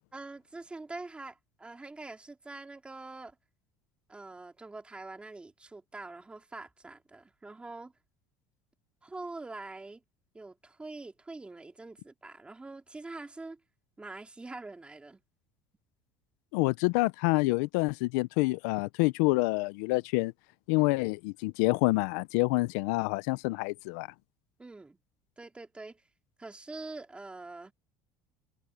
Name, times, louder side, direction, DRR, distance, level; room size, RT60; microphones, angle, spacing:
voice 1, 0.1-3.4 4.1-7.9 9.0-10.0 10.3-13.6 14.0-15.2 20.7-20.9 24.6-25.0 25.4-26.0 26.4-27.7, right 3 dB, 10° right, 3.0 m, -44 dB
voice 2, 16.5-20.3 20.7-24.1, left 24 dB, 85° left, 0.5 m, -27 dB
cardioid pair, 125°, 9 cm